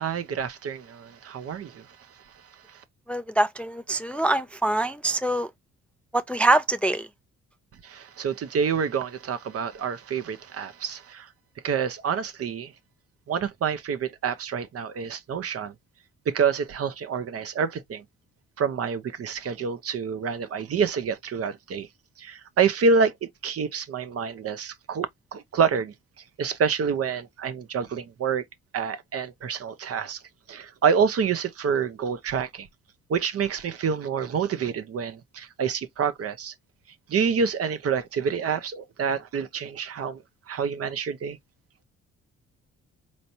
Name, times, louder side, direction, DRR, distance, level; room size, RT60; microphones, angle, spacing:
voice 1, 0.0-2.1 2.3-2.8 7.8-11.3 11.6-12.7 13.3-15.7 16.3-18.0 18.6-21.9 22.2-25.9 26.4-28.4 28.7-30.2 30.5-32.7 33.1-36.5 37.1-41.4, right 6 dB, 50° right, 0.8 m, -27 dB
voice 2, 3.1-5.5 6.1-7.1, right 2 dB, 5° left, 0.4 m, -24 dB
4.2 x 3.1 x 2.7 m
cardioid pair, 90°, 30 cm